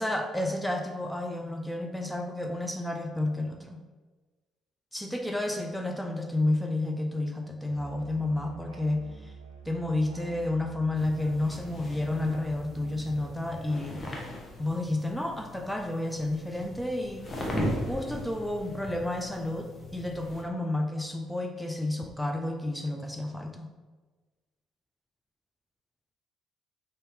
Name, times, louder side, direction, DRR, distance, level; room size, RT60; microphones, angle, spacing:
voice 1, 0.0-3.8 4.9-9.3 9.7-14.0 14.6-17.3 17.8-23.7, left 2 dB, 5° left, 3 dB, 0.5 m, -31 dB
Musical instrument, 7.7-13.4, right 4 dB, 85° right, 0.3 m, -47 dB
sound 1, 11.0-20.4, left 1 dB, 30° left, 0.9 m, -38 dB
4.0 x 2.6 x 3.4 m, 1.3 s
figure-of-eight pair, 50°, 0 cm